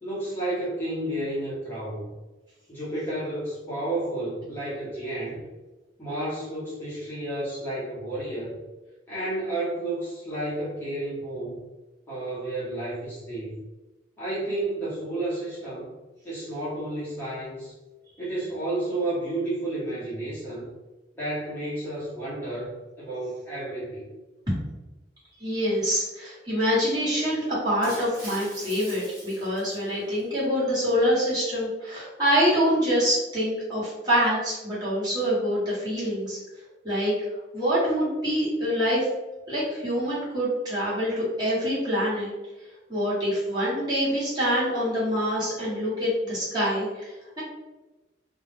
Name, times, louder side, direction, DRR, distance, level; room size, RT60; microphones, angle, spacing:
voice 1, 0.0-2.1 2.7-5.4 6.0-8.6 9.1-11.6 12.1-13.6 14.2-15.9 16.2-17.7 18.2-20.7 21.2-24.0 39.9-40.0, right 1 dB, 10° left, -10 dB, 0.7 m, -31 dB
voice 2, 25.4-36.4 36.8-37.1 37.5-39.1 39.5-42.3 42.9-47.4, equal, 25° right, -10 dB, 1.1 m, -25 dB
Shatter, 27.8-30.2, right 1 dB, 50° right, 1.0 m, -43 dB
2.3 x 2.0 x 3.2 m, 1.1 s
head